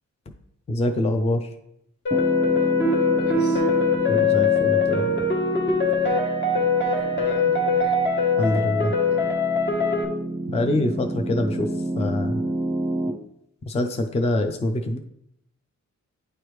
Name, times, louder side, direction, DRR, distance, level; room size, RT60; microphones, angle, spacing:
voice 1, 0.7-1.5 4.1-5.3 8.4-8.9 10.5-11.7 12.0-12.4 13.7-15.0, left 1 dB, 20° left, 6 dB, 0.4 m, -24 dB
sound 1, 2.1-10.1, left 4 dB, 40° left, 1.0 m, -22 dB
Piano, 2.1-13.1, right 2 dB, 15° right, 0.7 m, -30 dB
voice 2, 2.5-3.6 6.7-7.9 9.1-9.3 11.9-12.2, left 1 dB, 75° left, -5 dB, 2.4 m, -40 dB
9.5 x 3.3 x 3.1 m, 0.76 s
wide cardioid pair, 100°, 29 cm